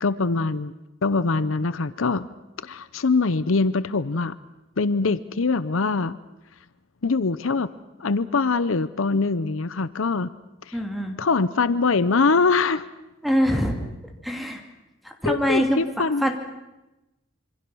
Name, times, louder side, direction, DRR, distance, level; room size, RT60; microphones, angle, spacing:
voice 1, 0.0-0.7 1.0-2.3 2.6-4.4 4.8-6.2 7.0-7.7 8.0-10.3 10.7-10.8 11.2-12.9 15.3-16.4, left 4 dB, 75° left, 15 dB, 0.7 m, -23 dB
voice 2, 10.7-11.2 13.2-13.8 14.2-14.6 15.0-15.8 16.2-16.4, equal, ahead, 3 dB, 2.7 m, -23 dB
26.5 x 24.5 x 6.2 m, 0.99 s
head